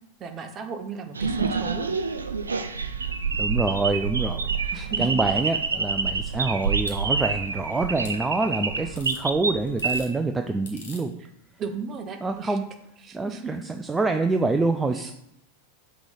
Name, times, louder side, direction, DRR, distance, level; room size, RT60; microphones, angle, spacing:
voice 1, 0.2-1.9 4.7-5.2 11.6-12.6 13.0-13.5 14.9-15.1, right 5 dB, 25° right, 6 dB, 0.8 m, -35 dB
sound 1, 1.1-10.0, right 4 dB, 75° right, 0.4 m, -27 dB
voice 2, 3.4-11.2 12.2-12.6 13.1-15.1, right 3 dB, 10° right, 6 dB, 0.4 m, -26 dB
sound 2, 5.0-7.0 8.0-8.2 9.0-9.2 9.7-10.1 10.7-11.0 12.3-12.4, left 3 dB, 60° left, 1.4 m, -45 dB
6.0 x 3.2 x 5.5 m, 0.78 s
figure-of-eight pair, 90°, 0 cm